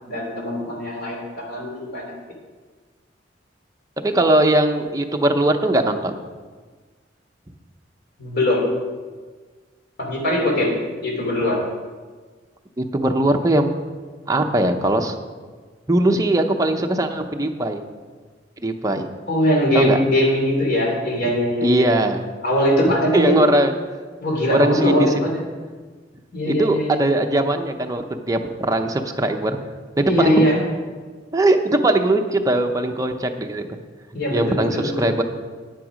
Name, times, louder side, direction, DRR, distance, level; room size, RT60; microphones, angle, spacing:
voice 1, 0.1-2.1 8.2-8.7 10.0-10.8 11.0-11.6 19.3-21.8 22.4-23.4 24.2-25.4 26.3-27.0 30.1-30.6 34.1-35.1, equal, 60° left, -1 dB, 3.1 m, -21 dB
voice 2, 4.0-6.2 12.8-13.7 14.3-15.1 15.9-17.8 18.6-19.1 19.7-20.0 21.6-22.2 23.1-23.7 24.5-25.1 26.4-29.6 30.0-30.5 31.3-33.8 34.3-35.2, right 1 dB, 20° right, 4 dB, 0.7 m, -20 dB
9.8 x 9.1 x 5.1 m, 1.4 s
head